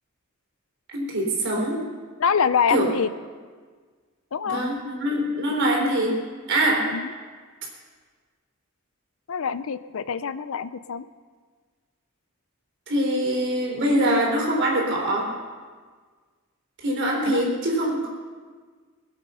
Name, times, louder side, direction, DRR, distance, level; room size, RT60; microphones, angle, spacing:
voice 1, 0.9-1.8 2.7-2.9 4.4-6.2 6.5-6.9 12.9-15.3 16.8-18.1, right 1 dB, 60° right, -1 dB, 3.8 m, -23 dB
voice 2, 2.2-3.1 4.3-4.6 6.9-7.1 9.3-11.0 17.3-17.4, left 6 dB, 75° left, 14 dB, 0.5 m, -25 dB
21.5 x 8.1 x 5.6 m, 1.5 s
head